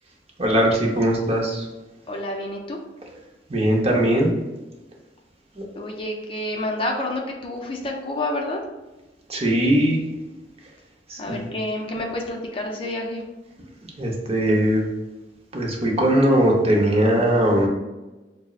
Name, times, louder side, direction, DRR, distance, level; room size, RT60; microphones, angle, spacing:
voice 1, 0.4-1.7 3.5-4.3 5.6-5.7 9.3-10.0 11.1-11.5 14.0-14.8 15.5-17.7, right 1 dB, 35° right, -1 dB, 0.7 m, -20 dB
voice 2, 2.1-2.8 5.8-8.6 11.2-13.2, left 1 dB, 30° left, 0 dB, 0.5 m, -29 dB
5.7 x 2.0 x 2.4 m, 1.1 s
head